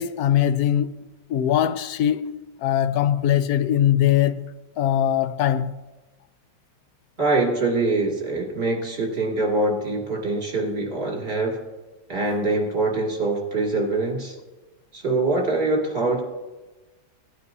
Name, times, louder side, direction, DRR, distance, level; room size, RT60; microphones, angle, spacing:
voice 1, 0.0-4.5 4.8-5.7, left 10 dB, 70° left, 1.0 m, -21 dB
voice 2, 7.2-11.6 12.1-14.4 14.9-16.2, right 2 dB, 35° right, 2.5 m, -24 dB
17.0 x 9.3 x 2.7 m
omnidirectional pair, 1.8 m